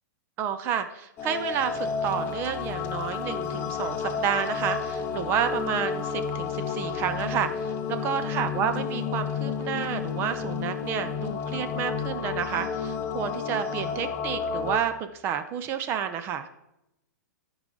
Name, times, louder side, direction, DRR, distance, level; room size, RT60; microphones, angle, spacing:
voice 1, 0.4-16.5, right 8 dB, 20° right, 9 dB, 0.4 m, -30 dB
sound 1, 1.2-14.8, left 6 dB, 20° left, 0.6 m, -31 dB
14.0 x 4.8 x 3.8 m, 0.86 s
hypercardioid pair, 160°, 10 cm